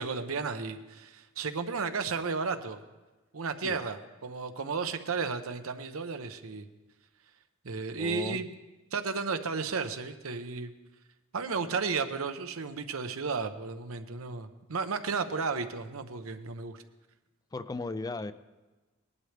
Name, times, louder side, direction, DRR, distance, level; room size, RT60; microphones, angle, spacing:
voice 1, 0.0-2.8 3.3-6.7 7.6-8.5 8.9-10.7 11.3-16.8, right 4 dB, 85° right, 8 dB, 0.8 m, -33 dB
voice 2, 8.0-8.4 17.5-18.3, left 2 dB, 20° left, 13 dB, 0.4 m, -36 dB
19.5 x 11.0 x 3.4 m, 1.2 s
head